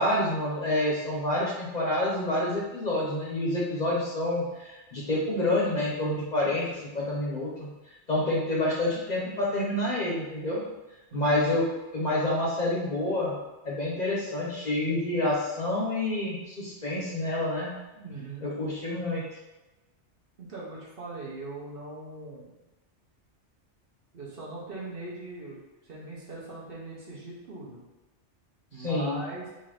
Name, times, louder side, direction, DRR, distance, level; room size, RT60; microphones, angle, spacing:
voice 1, 0.0-7.7 8.1-10.6 11.1-11.6 11.9-13.3 13.6-17.7 18.4-19.2 28.8-29.2, left 1 dB, 45° left, -5 dB, 0.8 m, -28 dB
voice 2, 11.1-11.6 17.9-18.5 20.4-22.5 24.1-27.8 28.7-29.5, right 2 dB, 55° right, -5 dB, 1.0 m, -40 dB
3.8 x 2.6 x 3.2 m, 1.1 s
omnidirectional pair, 1.2 m